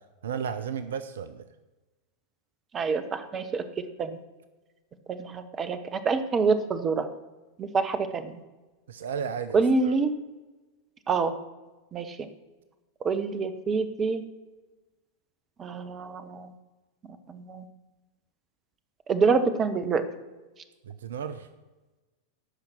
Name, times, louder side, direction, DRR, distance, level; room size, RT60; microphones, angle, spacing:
voice 1, 0.2-1.5 8.9-9.6 20.9-21.5, right 7 dB, 60° right, 12 dB, 0.5 m, -33 dB
voice 2, 2.7-3.6 4.0-4.2 5.1-7.1 7.6-8.3 9.5-10.1 11.1-11.3 11.9-12.3 13.0-14.2 15.6-16.5 17.3-17.6 19.1-20.1, right 4 dB, 25° right, 11 dB, 0.9 m, -26 dB
13.0 x 5.7 x 5.9 m, 1.2 s
figure-of-eight pair, 90°, 0 cm